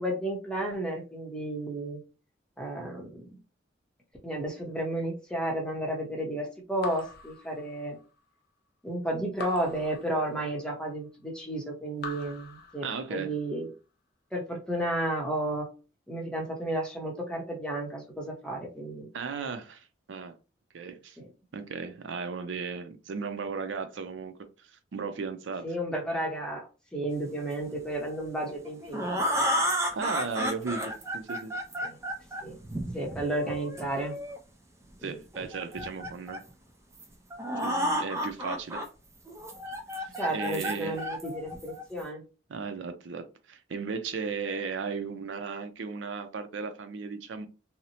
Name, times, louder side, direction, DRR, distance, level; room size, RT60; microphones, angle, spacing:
voice 1, 0.0-2.0 2.6-3.3 4.2-8.0 8.8-13.7 14.3-15.7 16.1-19.1 21.2-21.3 25.6-29.7 31.8-31.9 32.4-32.6 32.9-34.2 35.0-35.2 40.1-42.2, right 1 dB, 5° left, 0.7 m, -32 dB
Raindrop / Drip, 6.8-8.2 9.4-10.8 12.0-13.4, left 3 dB, 55° left, 0.5 m, -44 dB
voice 2, 12.8-13.3 19.1-20.3 20.7-21.2 21.5-25.7 29.9-31.5 35.0-36.4 37.6-38.8 40.0-41.0 42.5-47.5, right 5 dB, 75° right, 0.4 m, -36 dB
sound 1, 28.5-34.4 35.3-36.5 37.0-37.1 37.3-38.8 39.3-42.0, equal, 15° right, 0.3 m, -32 dB
2.8 x 2.0 x 2.8 m
head